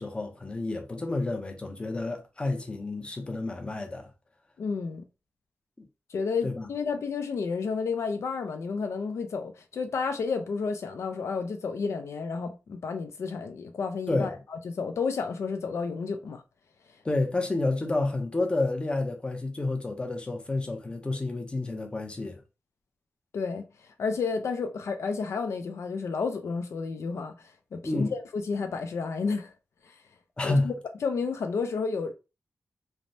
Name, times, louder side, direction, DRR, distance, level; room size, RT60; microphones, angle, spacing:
voice 1, 0.0-4.1 6.4-6.7 14.1-14.3 17.0-22.4 27.8-28.1 30.4-30.7, left 2 dB, 20° left, 0.6 m, -29 dB
voice 2, 4.6-5.0 6.1-16.4 23.3-23.6 24.0-29.5 30.4-30.7 31.0-32.1, left 5 dB, 75° left, 0.4 m, -31 dB
3.2 x 2.0 x 2.6 m
wide cardioid pair, 130°, 5 cm